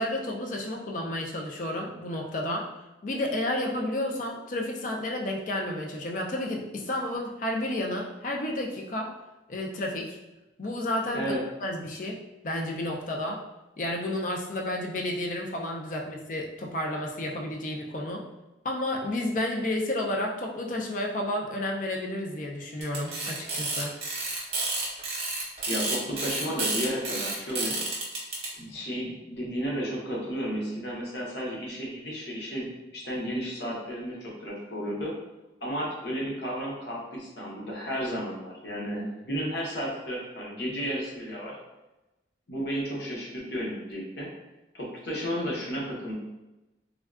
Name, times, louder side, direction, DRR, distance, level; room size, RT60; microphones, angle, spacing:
voice 1, 0.0-2.7 3.0-9.1 9.5-10.2 10.6-11.3 11.6-12.2 12.4-13.4 13.8-18.2 18.6-23.9, left 1 dB, 45° left, 0 dB, 0.4 m, -31 dB
sound 1, 22.8-28.5, right 3 dB, 35° right, 0.8 m, -30 dB
voice 2, 25.7-27.8 28.6-35.1 35.6-41.6 42.5-44.3 44.7-46.1, equal, 70° left, -4 dB, 0.9 m, -33 dB
3.5 x 2.2 x 2.3 m, 1.0 s
head